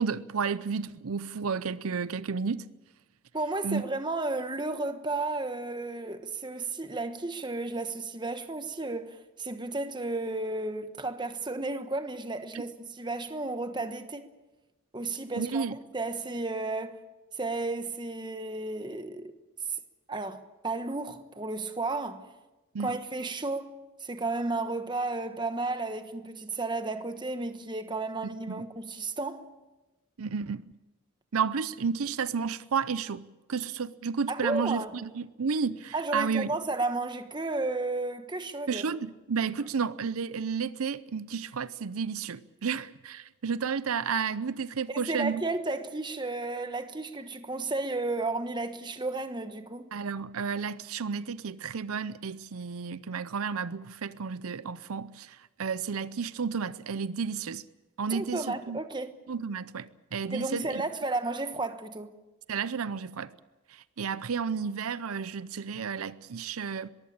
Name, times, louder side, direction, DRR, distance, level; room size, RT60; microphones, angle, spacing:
voice 1, 0.0-2.7 3.6-3.9 12.5-12.6 15.4-15.8 22.7-23.0 28.5-28.6 30.2-30.7 31.3-36.5 38.7-45.4 49.9-57.7 58.0-58.8 59.3-60.8 62.5-63.3 63.7-66.9, right 6 dB, 80° right, 0.6 m, -32 dB
voice 2, 3.3-14.3 14.9-17.0 17.3-19.3 20.1-22.3 22.8-29.5 34.3-34.9 35.9-38.8 44.9-49.9 58.1-59.1 60.3-62.1, right 2 dB, 20° right, 1.2 m, -33 dB
22.0 x 16.0 x 8.7 m
head